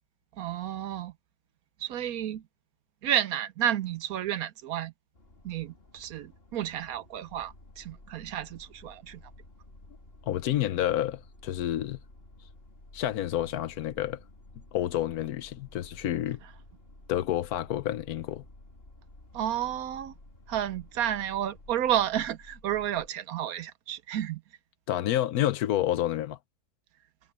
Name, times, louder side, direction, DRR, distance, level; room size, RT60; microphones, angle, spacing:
voice 1, 0.4-1.1 1.8-2.4 3.0-4.9 5.4-9.2 19.3-20.1 20.5-24.4, right 11 dB, 70° right, 1.1 m, -31 dB
sound 1, 5.1-22.1, left 2 dB, 35° left, 2.6 m, -58 dB
sound 2, 7.3-23.1, left 1 dB, 55° left, 7.4 m, -54 dB
voice 2, 10.3-12.0 12.9-14.2 14.7-16.4 17.1-18.4 24.9-26.4, left 12 dB, 75° left, 1.1 m, -29 dB
omnidirectional pair, 1.7 m